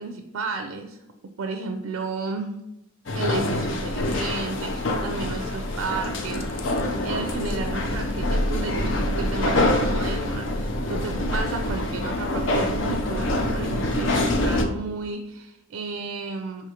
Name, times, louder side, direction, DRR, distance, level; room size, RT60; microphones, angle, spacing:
voice 1, 0.0-2.5 3.1-6.7 7.0-16.7, right 4 dB, 70° right, 5 dB, 0.4 m, -33 dB
sound 1, 3.1-14.7, left 1 dB, 60° left, 0.5 m, -25 dB
4.8 x 3.5 x 2.8 m, 0.86 s
head